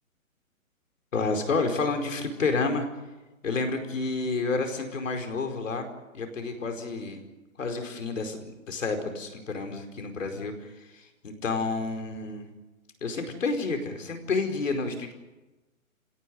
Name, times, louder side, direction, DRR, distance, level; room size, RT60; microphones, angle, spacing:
voice 1, 1.1-2.8 3.4-5.9 6.1-7.2 7.6-12.4 13.0-15.1, left 3 dB, 65° left, 6 dB, 4.9 m, -30 dB
27.5 x 18.0 x 9.4 m, 1.1 s
hypercardioid pair, 165°, 41 cm